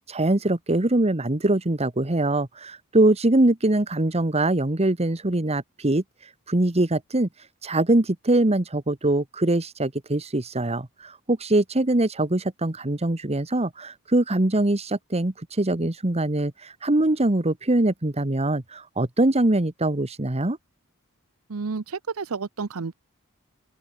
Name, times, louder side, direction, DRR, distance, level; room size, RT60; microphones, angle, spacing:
voice 1, 0.1-6.0 6.5-7.3 7.6-20.6, right 2 dB, 30° right, 1.4 m, -23 dB
voice 2, 21.5-22.9, right 4 dB, 75° right, 0.7 m, -30 dB
open air
head